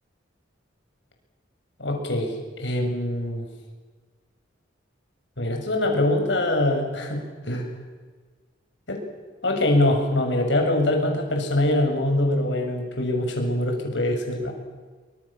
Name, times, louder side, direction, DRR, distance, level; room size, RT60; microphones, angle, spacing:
voice 1, 1.8-3.5 5.4-7.7 8.9-9.0 9.4-14.5, left 1 dB, 65° left, 3 dB, 7.1 m, -23 dB
27.0 x 25.5 x 7.4 m, 1.4 s
head